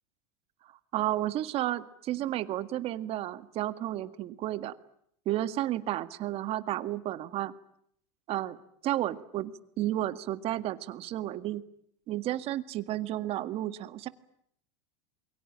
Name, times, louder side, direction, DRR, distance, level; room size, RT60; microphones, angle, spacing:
voice 1, 0.9-4.7 5.3-7.5 8.3-8.6 8.8-11.6 12.1-14.1, right 13 dB, 40° right, 13 dB, 1.9 m, -32 dB
28.5 x 23.0 x 8.9 m, 0.69 s
supercardioid pair, 130°, 15 cm